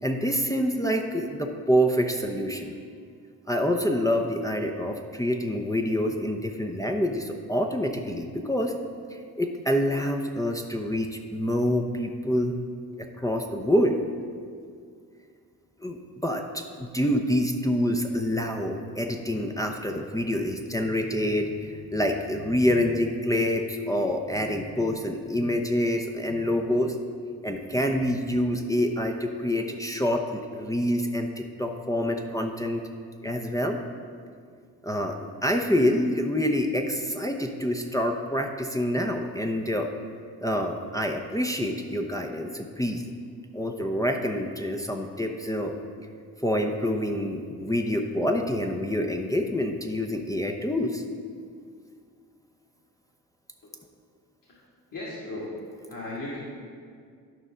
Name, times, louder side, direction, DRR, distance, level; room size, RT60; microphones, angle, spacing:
voice 1, 0.0-2.8 3.5-8.7 9.1-12.6 13.0-14.0 15.8-27.0 27.4-32.8 33.2-33.8 34.8-39.9 40.4-43.0 43.5-45.7 46.4-51.0, equal, 5° left, 2 dB, 0.8 m, -27 dB
voice 2, 54.9-55.5 55.9-56.4, left 2 dB, 45° left, -6 dB, 2.2 m, -36 dB
12.0 x 5.4 x 3.7 m, 2.1 s
hypercardioid pair, 45°, 45 cm